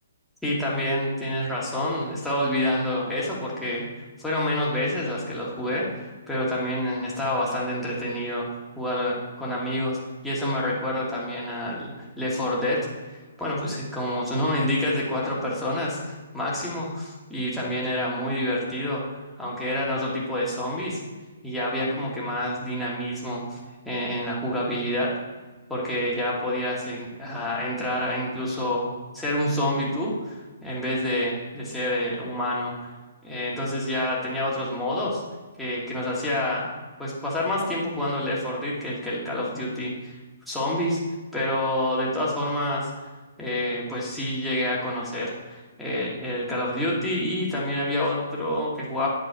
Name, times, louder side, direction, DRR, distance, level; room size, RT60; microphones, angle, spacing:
voice 1, 0.4-3.9 4.2-10.0 10.2-12.9 13.4-21.0 21.4-23.6 23.8-25.1 25.7-32.9 33.2-35.2 35.6-36.7 37.0-40.2 40.5-41.0 41.3-42.9 43.4-49.1, left 1 dB, ahead, -7 dB, 1.7 m, -28 dB
9.6 x 5.4 x 4.6 m, 1.3 s
hypercardioid pair, 165°, 0 cm